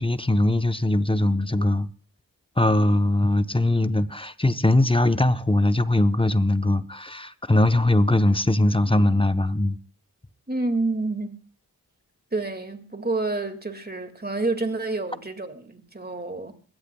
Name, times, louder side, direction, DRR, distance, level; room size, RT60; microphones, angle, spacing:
voice 1, 0.0-1.9 2.6-9.8, left 1 dB, 15° left, 0.8 m, -21 dB
voice 2, 10.5-11.3 12.3-16.5, right 2 dB, 25° right, 2.0 m, -28 dB
22.5 x 16.5 x 2.3 m
cardioid pair, 40°, 39 cm